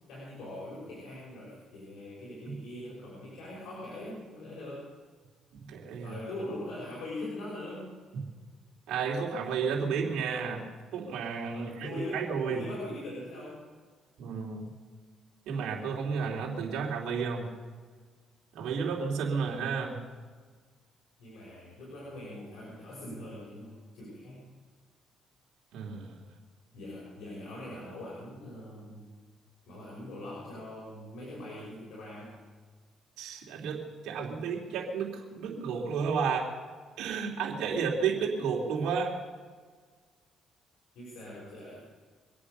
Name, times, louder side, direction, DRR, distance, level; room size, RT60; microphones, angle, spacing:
voice 1, 0.1-4.9 6.0-7.9 11.5-13.6 19.4-19.6 21.2-24.4 26.7-29.1 29.7-32.3 40.9-41.9, left 1 dB, 80° left, -5 dB, 6.0 m, -42 dB
voice 2, 5.5-6.2 8.9-10.6 10.9-12.6 14.2-14.7 15.5-17.5 18.5-20.0 25.7-26.2 33.2-36.5 37.0-39.1, right 5 dB, 80° right, -2 dB, 3.1 m, -32 dB
24.5 x 8.7 x 6.8 m, 1.5 s
cardioid pair, 85°, 0 cm